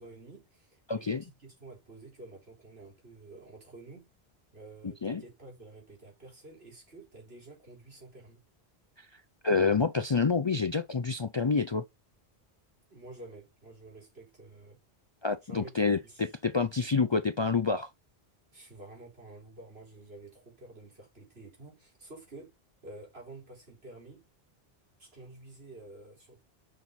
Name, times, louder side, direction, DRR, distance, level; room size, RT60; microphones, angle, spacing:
voice 1, 0.0-4.1 4.5-8.4 12.9-14.8 15.4-16.3 18.5-22.5 22.8-24.2 25.0-26.4, right 2 dB, 80° right, 4.5 m, -50 dB
voice 2, 0.9-1.2 5.0-5.2 9.0-9.1 9.4-11.8 15.2-16.0 16.4-17.9, left 4 dB, 40° left, 0.4 m, -27 dB
7.1 x 5.9 x 4.0 m
omnidirectional pair, 1.0 m